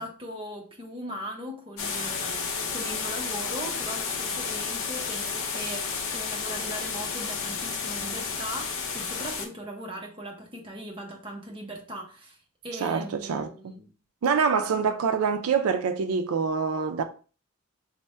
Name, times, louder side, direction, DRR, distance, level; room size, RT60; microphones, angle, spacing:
voice 1, 0.0-12.4 12.6-13.9, equal, 25° right, 0.7 m, -39 dB
sound 1, 1.8-9.5, left 5 dB, 65° left, 0.6 m, -31 dB
voice 2, 12.8-13.5 14.2-17.0, right 5 dB, 85° right, 0.4 m, -25 dB
3.3 x 2.1 x 4.2 m
head